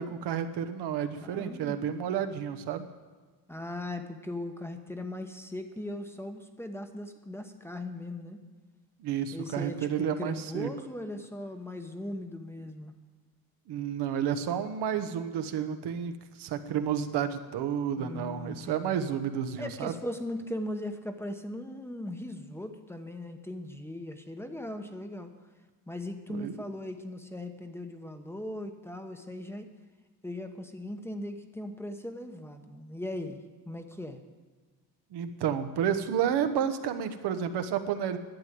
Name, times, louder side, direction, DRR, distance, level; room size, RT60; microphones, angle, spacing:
voice 1, 0.0-2.9 9.0-10.7 13.7-19.9 26.3-26.6 35.1-38.2, right 8 dB, 85° right, 8 dB, 1.1 m, -31 dB
voice 2, 1.2-1.8 3.5-8.4 9.3-12.9 18.0-19.0 19.6-25.3 25.9-29.7 30.2-33.4 33.7-34.2, left 1 dB, 5° left, 6 dB, 0.9 m, -39 dB
12.0 x 7.7 x 9.3 m, 1.4 s
cardioid pair, 140°, 39 cm